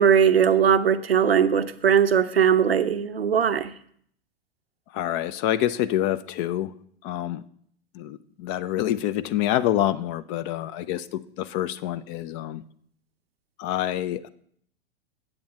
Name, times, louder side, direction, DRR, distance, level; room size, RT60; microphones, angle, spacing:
voice 1, 0.0-3.7, right 8 dB, 85° right, 11 dB, 0.7 m, -20 dB
voice 2, 4.9-6.7 7.0-7.4 7.9-12.6 13.6-14.3, left 12 dB, 35° left, 15 dB, 0.5 m, -27 dB
8.8 x 7.7 x 4.6 m, 0.63 s
figure-of-eight pair, 95°, 30 cm